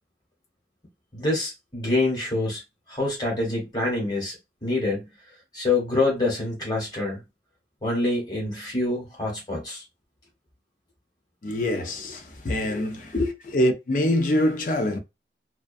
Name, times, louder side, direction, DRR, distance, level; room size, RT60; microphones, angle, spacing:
voice 1, 1.1-2.6 2.9-4.4 4.6-5.1 5.5-7.2 7.8-9.8 13.1-13.3, left 2 dB, 25° left, 1.1 m, -26 dB
voice 2, 11.4-13.1 13.5-15.0, left 1 dB, 45° left, 0.5 m, -24 dB
2.3 x 2.2 x 2.5 m
head